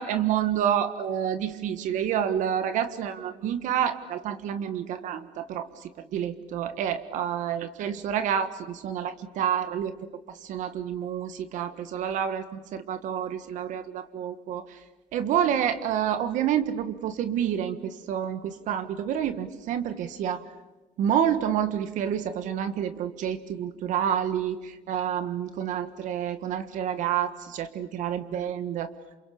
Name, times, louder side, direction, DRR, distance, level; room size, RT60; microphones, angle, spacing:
voice 1, 0.0-5.7 6.1-9.9 10.4-14.6 15.1-20.4 21.0-28.9, right 9 dB, 60° right, 10 dB, 1.6 m, -28 dB
28.5 x 28.0 x 7.0 m, 1.1 s
cardioid pair, 145°, 14 cm